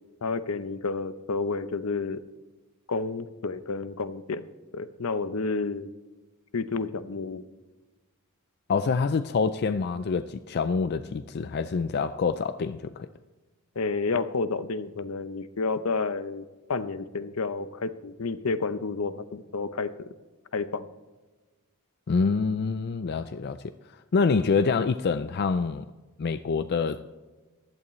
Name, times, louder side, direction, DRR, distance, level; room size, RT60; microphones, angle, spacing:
voice 1, 0.2-2.2 2.9-4.4 4.7-5.9 6.5-7.4 13.8-19.9 20.5-20.9, left 4 dB, 75° left, 0.7 m, -30 dB
voice 2, 8.7-13.1 22.1-23.7 24.1-25.9 26.2-27.0, left 5 dB, 50° left, 0.4 m, -26 dB
15.5 x 11.0 x 3.1 m
head